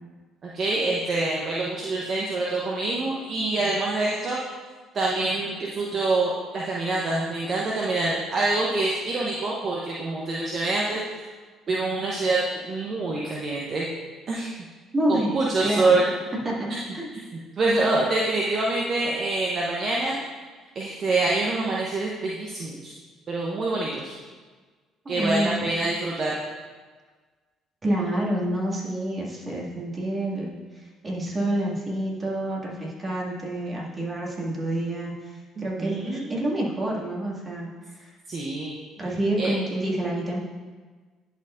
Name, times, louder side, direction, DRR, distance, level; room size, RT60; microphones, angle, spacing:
voice 1, 0.5-4.4 4.9-11.0 11.7-13.9 14.3-14.5 15.1-16.1 17.6-20.2 20.7-22.9 23.3-24.1 25.1-26.3 35.6-36.2 38.3-38.8 39.4-39.5, right 2 dB, 45° right, -4 dB, 0.9 m, -26 dB
voice 2, 14.9-15.9 16.4-16.7 16.9-17.1 25.0-25.5 27.8-38.1 39.0-40.4, right 1 dB, 30° right, -4 dB, 2.1 m, -28 dB
10.5 x 4.5 x 2.6 m, 1.4 s
hypercardioid pair, 55°, 0 cm